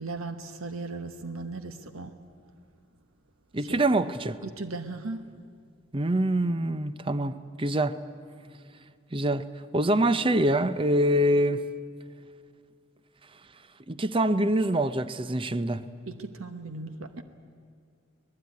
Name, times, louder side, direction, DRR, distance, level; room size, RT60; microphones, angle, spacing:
voice 1, 0.0-2.1 3.7-3.8 4.4-5.3 16.1-17.2, right 3 dB, 85° right, 1.2 m, -37 dB
voice 2, 3.5-4.4 5.9-8.0 9.1-9.5 9.7-11.6 13.9-15.8, right 1 dB, 25° right, 0.6 m, -25 dB
24.5 x 19.5 x 9.6 m
head